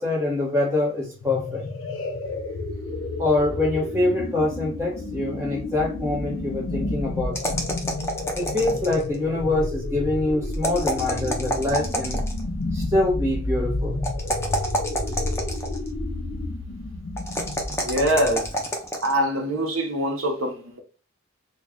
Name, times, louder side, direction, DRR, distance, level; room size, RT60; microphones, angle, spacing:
voice 1, 0.0-1.6 3.2-7.7 8.3-12.2 12.7-14.0, left 2 dB, 15° right, 1.1 m, -25 dB
sound 1, 1.1-18.7, left 2 dB, 75° left, 0.6 m, -31 dB
sound 2, 7.3-9.1 10.5-12.5 14.0-15.9 17.2-19.1, equal, 15° left, 0.5 m, -28 dB
voice 2, 17.7-18.5 19.0-20.8, equal, 85° right, 0.9 m, -24 dB
3.3 x 2.3 x 3.6 m
head